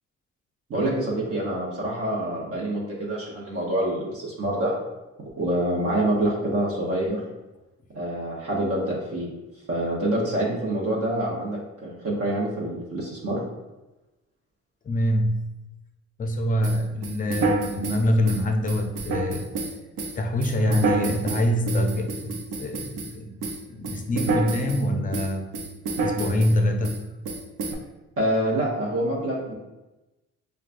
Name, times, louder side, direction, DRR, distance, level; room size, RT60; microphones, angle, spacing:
voice 1, 0.7-4.7 5.4-7.2 7.9-9.3 9.7-13.4 28.2-29.5, right 1 dB, 50° right, -4 dB, 0.9 m, -26 dB
voice 2, 14.8-15.5 16.2-19.5 20.2-23.4 23.7-25.5 26.0-27.1, left 1 dB, 30° left, 5 dB, 0.5 m, -25 dB
sound 1, 16.6-23.1 23.4-24.8 25.1-26.6 26.8-27.0 27.2-27.7, right 3 dB, 85° right, 0.6 m, -28 dB
4.6 x 2.3 x 2.5 m, 1.1 s
cardioid pair, 90°, 30 cm